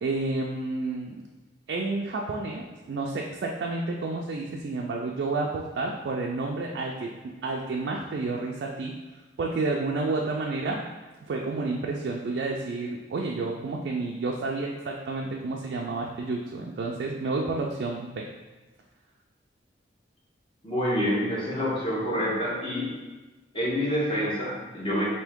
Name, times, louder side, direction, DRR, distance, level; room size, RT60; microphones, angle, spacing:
voice 1, 0.0-1.3 1.7-7.1 7.4-8.9 9.4-10.9 11.2-18.3, right 3 dB, 65° right, -1 dB, 0.3 m, -30 dB
voice 2, 20.6-22.9 23.5-25.0, equal, 30° left, -6 dB, 0.9 m, -27 dB
3.5 x 2.7 x 3.5 m, 1.2 s
head